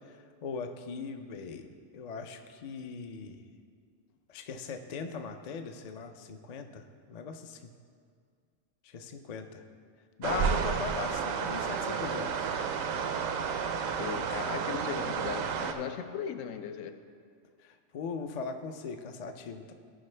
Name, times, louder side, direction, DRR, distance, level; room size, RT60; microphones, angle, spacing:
voice 1, 0.4-1.7 1.9-3.4 4.3-7.7 8.9-9.6 10.2-12.5 17.6-19.7, left 5 dB, 60° left, 6 dB, 0.4 m, -39 dB
sound 1, 10.2-15.7, right 6 dB, 90° right, 1.0 m, -31 dB
voice 2, 14.0-16.9, left 7 dB, 80° left, 8 dB, 1.0 m, -37 dB
15.0 x 5.3 x 3.3 m, 2.1 s
omnidirectional pair, 1.3 m